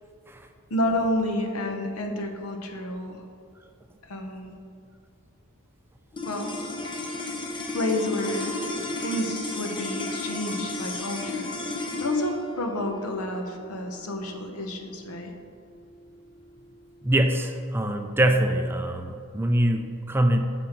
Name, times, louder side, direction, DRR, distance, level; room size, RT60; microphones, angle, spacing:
voice 1, 0.7-3.2 4.0-4.6 6.2-6.6 7.7-8.7 9.0-15.3, left 1 dB, 75° left, 4 dB, 0.9 m, -30 dB
sound 1, 6.1-16.6, left 2 dB, 20° left, 0.7 m, -34 dB
voice 2, 17.0-20.4, right 1 dB, 10° right, 5 dB, 0.3 m, -24 dB
7.7 x 6.3 x 4.4 m, 2.4 s
head